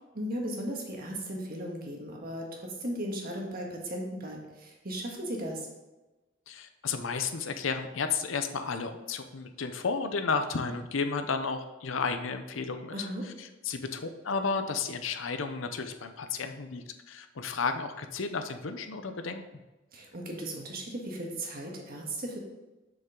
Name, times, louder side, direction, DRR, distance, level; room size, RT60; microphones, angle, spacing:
voice 1, 0.1-5.7 12.9-13.3 19.9-22.4, right 1 dB, 45° right, 0 dB, 1.6 m, -36 dB
voice 2, 6.5-13.0 13.3-19.4, left 5 dB, 70° left, 8 dB, 0.7 m, -33 dB
7.0 x 6.4 x 3.8 m, 1.1 s
head